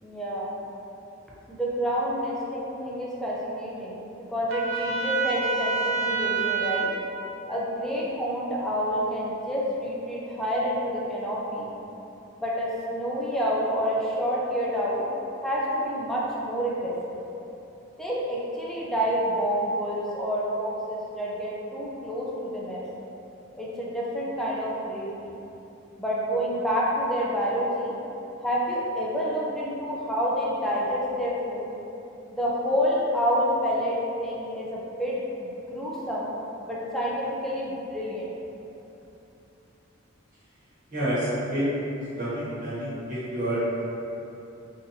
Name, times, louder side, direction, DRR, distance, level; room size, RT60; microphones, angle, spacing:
voice 1, 0.0-0.6 1.5-4.0 4.3-6.9 7.5-11.7 12.4-15.0 15.4-17.1 18.0-22.8 23.6-25.3 26.0-27.9 28.4-31.7 32.3-36.3 36.7-38.3, equal, ahead, -6 dB, 0.4 m, -28 dB
Trumpet, 4.5-7.0, right 5 dB, 75° right, 0.6 m, -27 dB
voice 2, 40.9-41.6 42.2-43.8, right 1 dB, 40° right, -12 dB, 0.8 m, -28 dB
4.0 x 2.6 x 2.7 m, 2.9 s
head